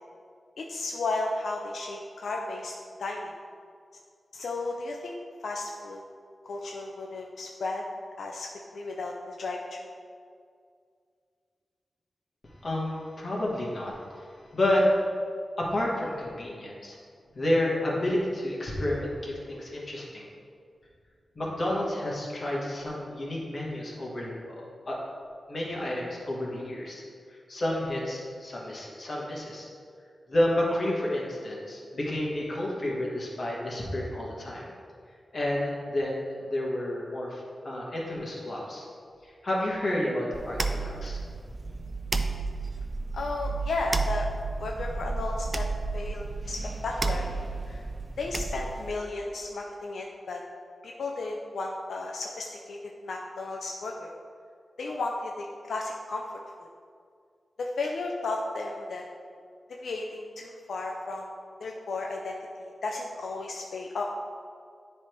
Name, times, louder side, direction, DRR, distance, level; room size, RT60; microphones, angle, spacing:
voice 1, 0.6-2.7 3.0-3.3 4.3-5.1 5.4-6.0 6.5-7.8 8.2-8.5 8.7-9.9 43.1-44.3 44.6-45.6 45.9-46.6 46.8-47.3 47.7-47.9 48.2-50.4 50.8-52.8 53.0-54.1 54.8-56.3 57.6-59.0 59.8-61.3 61.6-64.0, left 3 dB, 80° left, 0 dB, 0.5 m, -34 dB
voice 2, 12.6-14.3 14.5-14.9 15.6-17.0 17.3-20.3 21.3-25.0 25.5-27.0 27.3-29.7 30.3-34.7 35.3-38.9 39.2-41.2, left 1 dB, 40° left, -4 dB, 1.5 m, -30 dB
sound 1, 40.3-48.9, right 3 dB, 25° right, 0.4 m, -32 dB
10.0 x 3.4 x 4.5 m, 2.2 s
wide cardioid pair, 170°, 0 cm